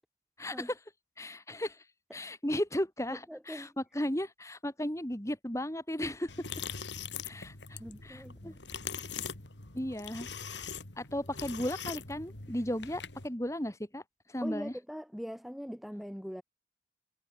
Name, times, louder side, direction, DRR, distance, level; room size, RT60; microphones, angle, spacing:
voice 1, 0.4-0.7 1.2-1.8 2.1-6.3 7.2-8.5 9.7-10.7 11.0-14.0 14.3-14.7, left 1 dB, 15° left, 2.3 m, -35 dB
voice 2, 3.1-3.8 7.8-8.6 14.4-16.4, equal, ahead, 2.5 m, -42 dB
sound 1, 6.3-13.3, left 6 dB, 75° left, 3.0 m, -42 dB
head